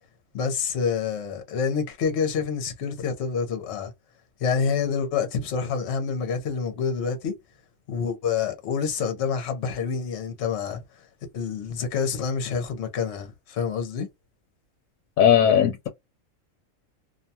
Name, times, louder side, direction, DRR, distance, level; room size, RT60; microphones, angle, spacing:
voice 1, 0.3-3.9 4.4-7.3 7.9-10.8 11.3-14.1, left 6 dB, 60° left, 1.0 m, -27 dB
voice 2, 15.2-15.9, left 9 dB, 85° left, 1.0 m, -18 dB
2.6 x 2.2 x 2.7 m
omnidirectional pair, 1.4 m